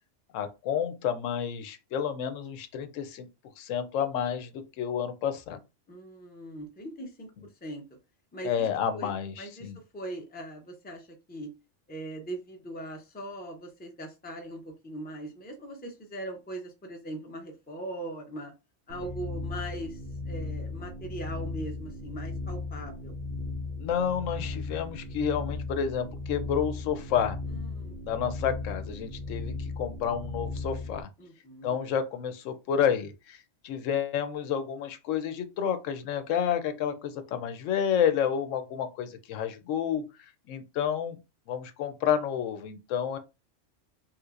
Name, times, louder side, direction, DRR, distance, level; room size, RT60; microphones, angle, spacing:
voice 1, 0.3-3.3 3.6-5.6 8.4-9.8 23.8-27.4 28.0-31.1 31.6-33.4 33.6-40.0 40.5-41.2 41.5-43.2, left 8 dB, 90° left, 1.0 m, -30 dB
voice 2, 5.9-7.3 7.6-7.8 8.3-8.7 8.9-11.5 11.9-18.5 18.9-23.1 27.5-28.2 31.2-31.7, right 1 dB, 10° left, 0.4 m, -40 dB
sound 1, 18.9-31.0, left 3 dB, 60° right, 0.6 m, -36 dB
3.1 x 2.9 x 2.4 m
omnidirectional pair, 1.3 m